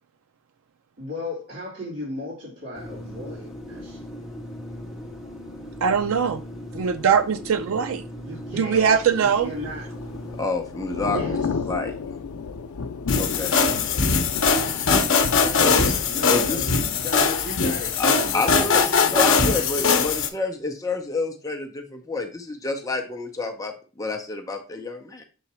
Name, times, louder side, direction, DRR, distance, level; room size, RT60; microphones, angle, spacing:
voice 1, 1.0-4.1 8.2-9.9 11.0-11.4 15.4-15.7 16.1-19.9, left 1 dB, 50° right, 3.5 m, -36 dB
sound 1, 2.7-10.4, equal, 5° right, 1.5 m, -38 dB
voice 2, 5.8-6.4 6.7-8.0 8.5-9.5, right 7 dB, 70° right, 0.4 m, -21 dB
Thunder / Rain, 9.2-19.1 19.4-19.7, left 4 dB, 85° left, 0.5 m, -33 dB
voice 3, 10.3-11.4 11.7-11.9 13.1-13.5 15.6-16.7 18.0-25.2, left 3 dB, 15° left, 0.6 m, -29 dB
sound 2, 13.1-20.3, left 5 dB, 60° left, 0.8 m, -21 dB
7.0 x 3.8 x 4.2 m
head